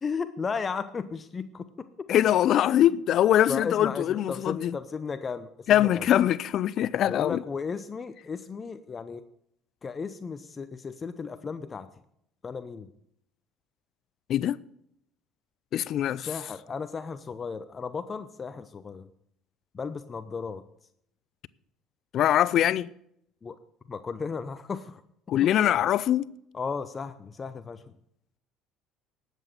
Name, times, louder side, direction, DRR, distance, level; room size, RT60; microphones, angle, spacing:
voice 1, 0.0-2.1 2.7-2.9 3.5-6.1 7.1-9.2 9.8-11.9 12.4-12.9 16.2-19.1 19.7-20.6 23.4-23.6 23.9-25.0 25.4-25.5 26.5-27.9, left 5 dB, 35° left, 0.7 m, -35 dB
voice 2, 2.1-4.8 5.7-7.4 14.3-14.6 15.7-16.3 22.1-22.9 25.3-26.3, left 11 dB, 60° left, 0.4 m, -23 dB
12.0 x 8.2 x 6.9 m
supercardioid pair, 80°, 0 cm